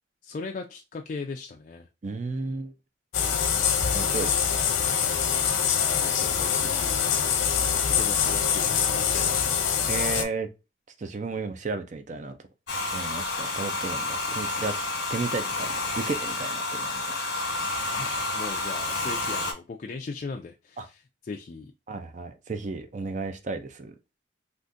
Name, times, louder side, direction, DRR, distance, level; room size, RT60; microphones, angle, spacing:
voice 1, 0.2-1.9 6.0-7.0 7.5-9.6 14.3-14.4 17.9-21.7, left 4 dB, 40° left, 0.3 m, -38 dB
voice 2, 2.0-2.7 3.9-4.6 9.9-10.5 11.0-12.4 12.9-14.7 15.1-17.3 20.8-20.9 21.9-23.9, right 4 dB, 40° right, 0.4 m, -33 dB
sound 1, 3.1-10.2, left 7 dB, 85° left, 0.6 m, -24 dB
Domestic sounds home sounds, 12.7-19.5, left 2 dB, 60° left, 1.1 m, -30 dB
3.7 x 2.5 x 2.5 m
head